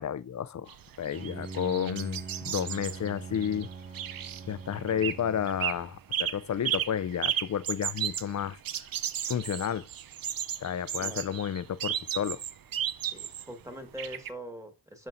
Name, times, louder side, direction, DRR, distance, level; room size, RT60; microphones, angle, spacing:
voice 1, 0.0-3.7 4.5-8.6 9.3-9.9 10.6-12.4, left 9 dB, 45° left, 0.4 m, -31 dB
sound 1, 0.7-5.2 5.5-5.8 6.1-13.5 14.0-14.3, right 10 dB, 55° right, 0.5 m, -34 dB
Bowed string instrument, 1.1-6.1, right 4 dB, 20° right, 1.7 m, -43 dB
voice 2, 11.0-11.4 13.1-15.1, equal, 5° right, 1.6 m, -42 dB
10.5 x 5.5 x 2.6 m
wide cardioid pair, 80°, 43 cm